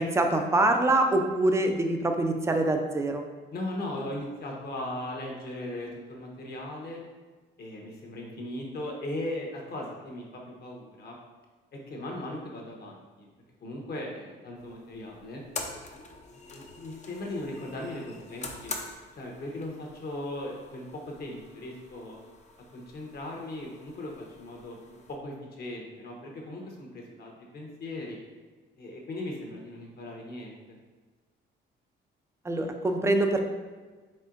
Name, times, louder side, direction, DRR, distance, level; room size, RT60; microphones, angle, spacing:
voice 1, 0.0-3.2 32.4-33.4, right 2 dB, 15° right, 4 dB, 0.4 m, -24 dB
voice 2, 3.5-7.0 7.6-10.2 10.6-11.2 11.7-13.3 13.6-15.4 16.2-18.8 19.2-22.2 22.7-24.8 25.1-28.2 28.8-30.8, left 1 dB, 55° left, 0 dB, 1.0 m, -38 dB
sound 1, 14.6-25.2, left 3 dB, 35° left, 0.5 m, -45 dB
4.3 x 3.6 x 2.5 m, 1.3 s
cardioid pair, 90°, 20 cm